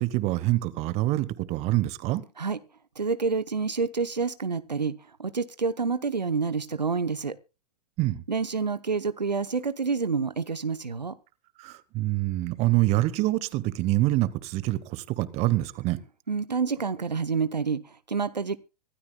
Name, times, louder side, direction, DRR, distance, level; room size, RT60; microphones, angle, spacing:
voice 1, 0.0-2.2 8.0-8.2 11.6-16.0, right 17 dB, 30° right, 1.2 m, -26 dB
voice 2, 3.0-7.3 8.3-11.2 16.3-18.6, right 5 dB, 85° right, 0.8 m, -28 dB
25.0 x 13.0 x 2.3 m
figure-of-eight pair, 110°, 21 cm